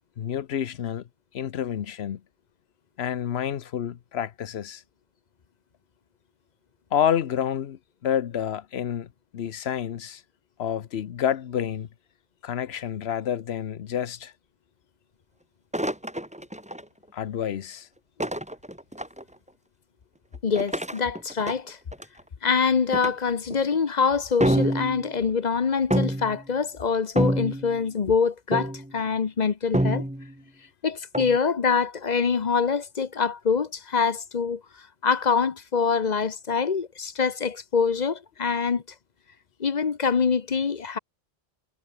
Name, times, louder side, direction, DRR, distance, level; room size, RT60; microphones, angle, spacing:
voice 1, 0.2-1.0 1.3-2.2 3.0-4.8 6.9-10.2 10.6-11.9 12.4-14.3 17.1-17.9, left 9 dB, 90° left, 1.1 m, -29 dB
sound 1, 15.7-16.8 18.2-19.2 20.5-22.2 22.9-23.1 23.5-23.8 24.4-25.1 25.9-26.4 27.2-27.8 28.5-28.9 29.7-30.3 31.1-31.4, right 1 dB, 5° right, 1.7 m, -27 dB
voice 2, 20.4-21.8 22.4-30.0 30.8-34.6 35.0-38.8 39.6-41.0, left 5 dB, 45° left, 1.0 m, -25 dB
omnidirectional pair, 1.0 m